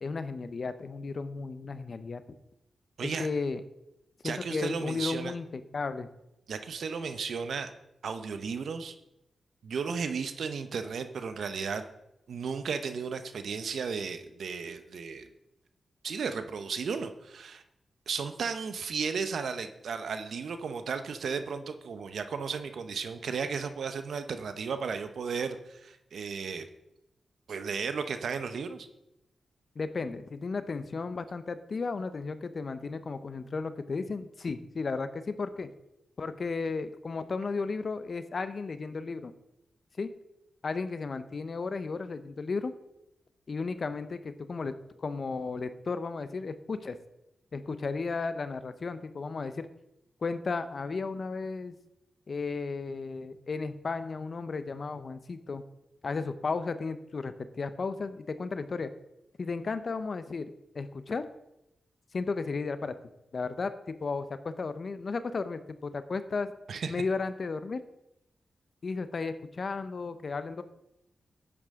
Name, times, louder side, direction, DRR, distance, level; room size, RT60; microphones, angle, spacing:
voice 1, 0.0-2.2 3.0-3.6 4.2-6.1 29.8-35.7 36.2-39.3 40.0-40.1 40.6-42.7 43.5-44.7 45.0-47.0 47.5-49.7 50.2-51.7 52.3-55.6 56.0-58.9 59.4-61.2 62.1-62.9 63.3-66.5 66.9-67.8 68.8-70.6, left 4 dB, 60° left, 11 dB, 0.8 m, -34 dB
voice 2, 4.2-5.3 6.5-7.7 8.0-8.9 9.6-11.8 12.3-15.3 16.0-17.6 18.1-26.7 27.5-28.9 66.7-66.9, right 5 dB, 75° right, 9 dB, 0.8 m, -34 dB
11.5 x 8.7 x 3.7 m, 0.87 s
supercardioid pair, 45°, 0 cm